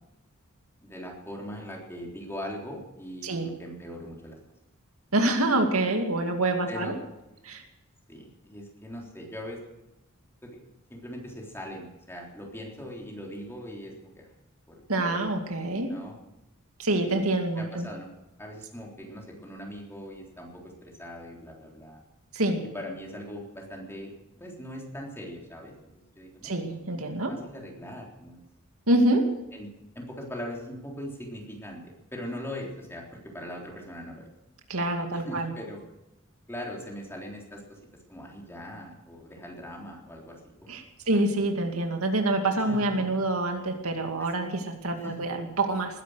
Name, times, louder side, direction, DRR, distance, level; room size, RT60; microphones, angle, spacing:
voice 1, 0.8-4.4 6.7-7.0 8.1-9.6 10.4-10.6 10.9-14.3 14.7-15.3 15.8-16.2 17.0-17.2 17.6-18.1 18.4-22.0 22.7-26.8 27.3-28.4 29.5-29.7 30.0-34.3 35.1-35.8 36.5-37.8 38.1-40.7 41.1-41.2 42.6-43.1 44.4-44.5 45.0-45.2, equal, 10° left, -1 dB, 3.7 m, -40 dB
voice 2, 5.1-6.9 7.4-7.6 14.9-15.9 16.8-17.9 22.3-22.6 26.4-27.3 28.9-29.4 34.7-35.5 40.7-46.0, right 2 dB, 80° right, 4 dB, 2.4 m, -26 dB
20.0 x 11.0 x 6.5 m, 0.94 s
head